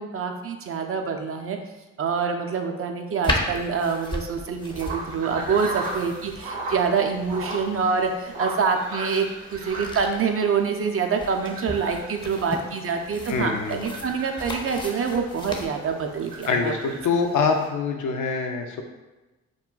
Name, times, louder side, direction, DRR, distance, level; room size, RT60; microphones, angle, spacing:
voice 1, 0.0-1.6 2.0-9.3 9.5-17.0, right 5 dB, 40° right, 4 dB, 0.4 m, -26 dB
sound 1, 3.2-16.5, left 1 dB, 15° left, 0.5 m, -35 dB
sound 2, 4.6-17.7, right 2 dB, 90° right, 0.6 m, -38 dB
voice 2, 13.3-14.0 16.5-18.8, left 5 dB, 55° left, 3 dB, 0.5 m, -25 dB
2.3 x 2.2 x 3.7 m, 1.1 s
hypercardioid pair, 45°, 37 cm